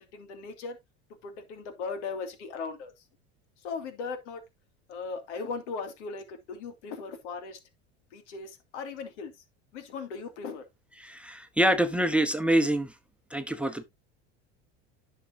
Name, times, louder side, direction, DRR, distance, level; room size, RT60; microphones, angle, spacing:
voice 1, 0.1-0.8 1.2-2.9 3.6-4.4 4.9-7.6 8.1-9.3 9.7-10.6, left 4 dB, 85° left, 2.4 m, -38 dB
voice 2, 11.0-12.9 13.3-13.8, right 1 dB, 5° right, 1.0 m, -25 dB
11.0 x 6.5 x 2.7 m
supercardioid pair, 110°, 34 cm